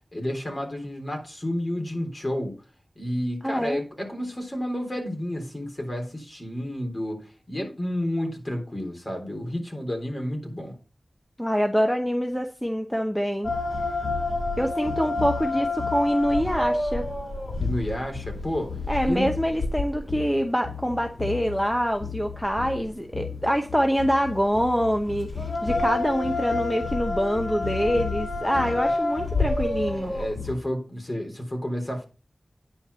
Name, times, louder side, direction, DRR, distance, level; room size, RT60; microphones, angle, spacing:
voice 1, 0.1-2.6 3.0-10.8 17.6-19.3 28.5-28.8 30.0-32.0, left 1 dB, 30° left, 3 dB, 3.6 m, -31 dB
voice 2, 3.4-3.8 11.4-13.5 14.6-17.0 18.9-30.1, equal, 5° left, 5 dB, 0.9 m, -25 dB
sound 1, 13.4-30.6, left 3 dB, 60° left, 3.5 m, -29 dB
9.8 x 4.6 x 6.8 m, 0.34 s
wide cardioid pair, 80°, 0 cm